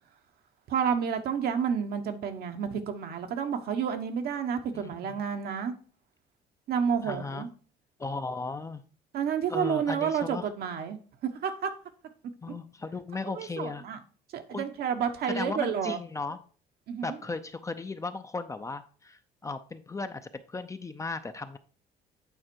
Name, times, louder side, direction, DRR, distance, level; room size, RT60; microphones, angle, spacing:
voice 1, 0.7-5.7 6.7-7.5 9.1-11.0 11.4-11.7 13.3-14.0 14.3-16.0 16.9-17.2, right 7 dB, 65° right, 1.1 m, -30 dB
voice 2, 4.8-5.2 7.0-7.5 8.0-8.8 9.5-10.5 12.4-13.8 14.5-14.7 15.3-16.4 17.0-21.6, left 3 dB, 20° left, 0.6 m, -36 dB
8.9 x 4.2 x 4.6 m
cardioid pair, 110°, 17 cm